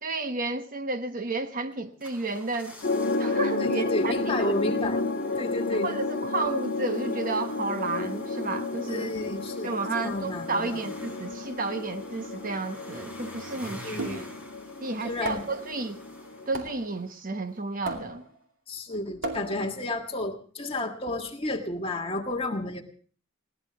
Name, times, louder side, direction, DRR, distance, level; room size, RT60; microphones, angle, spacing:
voice 1, 0.0-2.7 3.2-4.1 4.4-4.5 5.0-5.1 5.7-9.1 9.6-14.3 14.8-16.0 16.5-18.2, right 3 dB, 40° right, 8 dB, 1.0 m, -32 dB
sound 1, 1.7-17.2 17.5-17.6, equal, 5° right, 4.0 m, -49 dB
sound 2, 2.8-16.8, left 3 dB, 55° left, 1.4 m, -32 dB
voice 2, 3.6-5.0 5.4-5.9 8.9-9.8 10.0-10.8 13.8-14.3 15.0-15.4 18.7-22.8, left 2 dB, 25° left, 2 dB, 1.7 m, -31 dB
sound 3, 14.0-14.5 15.3-15.7 16.5-16.9 17.9-18.4 19.2-19.8, right 2 dB, 75° right, 2.6 m, -36 dB
20.5 x 18.0 x 3.4 m, 0.42 s
head